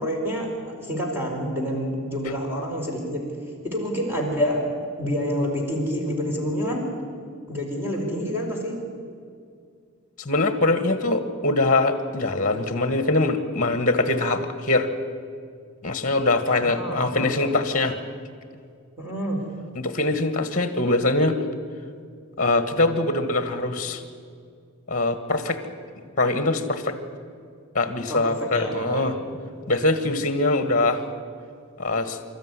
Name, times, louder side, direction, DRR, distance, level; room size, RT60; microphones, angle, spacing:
voice 1, 0.0-3.2 3.6-4.6 5.0-6.9 7.5-8.8 16.6-17.6 19.0-19.5 28.1-29.4, equal, 10° right, -1 dB, 4.6 m, -28 dB
voice 2, 10.2-14.9 15.8-18.0 19.7-21.4 22.4-24.0 24.9-25.6 26.2-27.0 27.7-29.1 29.7-31.0 31.8-32.2, left 2 dB, 35° left, 10 dB, 1.6 m, -23 dB
26.5 x 13.5 x 9.8 m, 2.3 s
head